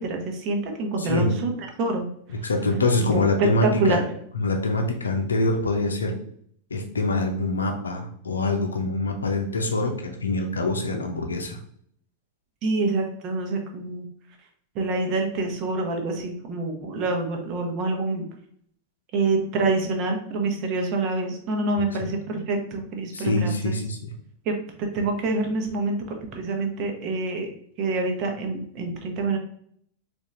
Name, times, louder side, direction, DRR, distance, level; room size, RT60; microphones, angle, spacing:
voice 1, 0.0-1.5 1.8-2.1 3.4-3.5 3.8-4.0 12.6-14.1 14.7-18.2 19.1-23.7 24.4-27.5 27.8-29.4, right 3 dB, 40° right, 3 dB, 1.0 m, -26 dB
voice 2, 1.0-1.4 2.4-4.0 4.3-6.2 6.7-11.6 21.8-21.9 23.1-24.1, left 2 dB, 75° left, 3 dB, 0.6 m, -25 dB
4.1 x 2.7 x 3.6 m, 0.64 s
figure-of-eight pair, 90°, 0 cm